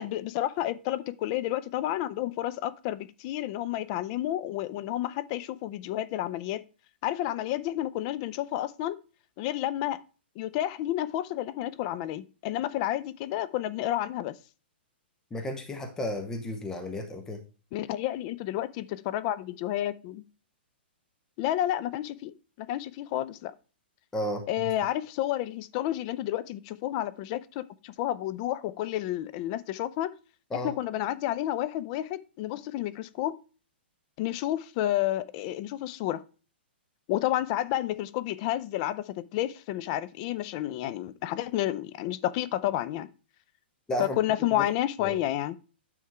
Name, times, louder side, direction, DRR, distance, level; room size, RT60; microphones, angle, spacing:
voice 1, 0.0-6.6 7.0-9.0 9.4-10.0 10.4-14.3 17.7-20.2 21.4-23.5 24.5-30.1 30.5-33.4 34.2-36.2 37.1-43.1 44.0-45.6, left 13 dB, 35° left, 0.5 m, -30 dB
voice 2, 15.3-17.4 24.1-24.7 30.5-30.7 43.9-44.2 44.5-44.7 45.0-45.2, left 1 dB, 10° left, 0.9 m, -33 dB
9.4 x 3.6 x 4.6 m
hypercardioid pair, 140°, 6 cm